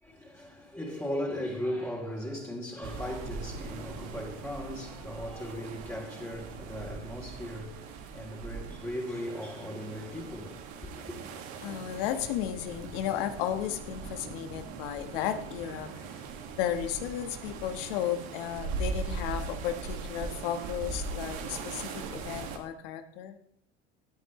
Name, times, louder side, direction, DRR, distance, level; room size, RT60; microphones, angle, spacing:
voice 1, 0.0-10.9, equal, 10° left, 3.3 m, -37 dB
sound 1, 2.8-22.6, right 4 dB, 70° right, 2.1 m, -40 dB
voice 2, 11.6-15.9 16.6-23.4, left 10 dB, 75° left, 1.5 m, -34 dB
17.0 x 9.0 x 3.2 m
hypercardioid pair, 75°, 29 cm